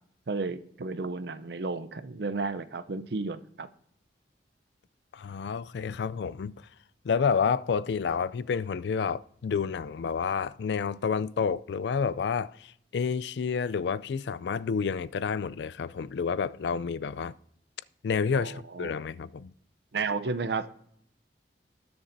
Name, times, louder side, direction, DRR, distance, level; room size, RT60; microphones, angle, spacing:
voice 1, 0.3-3.7 18.3-18.9 19.9-20.8, right 4 dB, 65° right, 0.6 m, -33 dB
voice 2, 5.1-6.5 7.0-17.3 18.0-19.5, left 6 dB, 70° left, 0.4 m, -29 dB
20.0 x 7.0 x 2.6 m
head